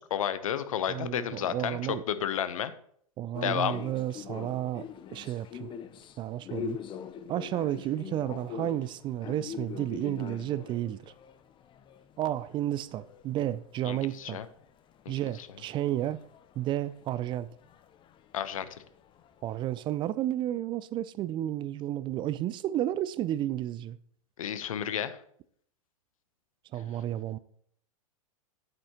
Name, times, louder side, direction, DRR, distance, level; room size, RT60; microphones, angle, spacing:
voice 1, 0.1-1.8 2.1-2.7 3.4-3.8 13.8-14.4 15.0-15.1 18.3-18.6 24.4-25.2, left 9 dB, 70° left, 0.9 m, -31 dB
voice 2, 0.9-2.0 3.2-4.9 5.1-5.7 6.2-6.8 7.3-11.1 12.2-14.4 15.1-16.2 16.6-17.5 19.4-24.0 26.7-27.4, right 12 dB, 25° right, 0.4 m, -32 dB
sound 1, 3.3-14.2 14.4-19.6, left 8 dB, 25° left, 0.8 m, -44 dB
9.8 x 8.7 x 3.0 m
hypercardioid pair, 100°, 18 cm